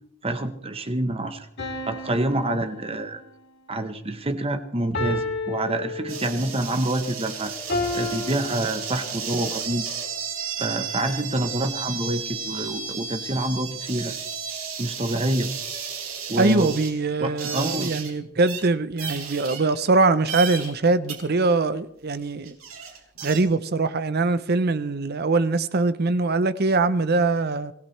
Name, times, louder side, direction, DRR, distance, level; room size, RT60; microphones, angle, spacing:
voice 1, 0.2-1.5 1.9-3.2 3.7-7.5 7.9-9.8 10.6-14.1 14.8-15.5 16.3-16.8 17.2-17.9, right 1 dB, 30° right, 1.1 m, -27 dB
sound 1, 1.6-3.4 4.9-6.6 7.7-9.4, left 2 dB, 55° left, 2.9 m, -31 dB
sound 2, 6.1-18.1 18.4-18.6 19.0-20.0 20.3-20.7 21.1-21.2 22.1-22.2 22.4-23.4, right 6 dB, 80° right, 4.4 m, -33 dB
voice 2, 16.4-22.6 23.2-27.7, right 3 dB, 50° right, 0.7 m, -22 dB
26.0 x 17.0 x 3.3 m
head